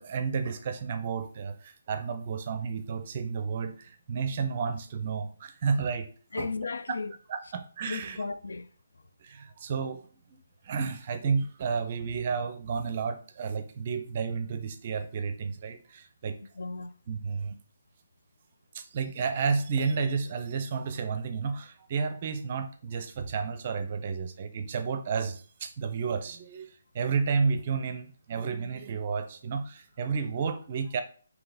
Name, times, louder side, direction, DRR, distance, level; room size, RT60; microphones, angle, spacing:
voice 1, 0.0-6.1 6.4-6.5 7.3-8.2 9.2-10.0 10.6-16.4 17.1-17.6 18.7-26.7 26.9-31.0, right 5 dB, 40° right, 0.5 m, -31 dB
voice 2, 6.3-7.1 7.9-8.7 16.6-17.0, left 4 dB, 80° left, 0.4 m, -35 dB
3.8 x 2.8 x 3.9 m
hypercardioid pair, 155°, 0 cm